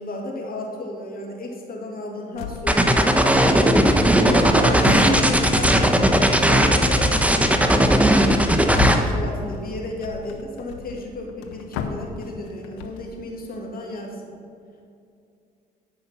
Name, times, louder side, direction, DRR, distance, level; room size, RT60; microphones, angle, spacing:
voice 1, 0.0-3.1 4.6-6.0 6.4-8.1 8.6-14.3, left 2 dB, 50° left, -1 dB, 2.6 m, -34 dB
sound 1, 2.4-3.0 3.2-3.8 4.2-13.2, left 7 dB, 85° left, 0.7 m, -34 dB
sound 2, 2.7-9.0, right 1 dB, 5° right, 1.1 m, -17 dB
voice 2, 4.1-5.3, right 1 dB, 60° right, -1 dB, 2.9 m, -25 dB
12.5 x 5.7 x 5.8 m, 2.4 s
hypercardioid pair, 50°, 19 cm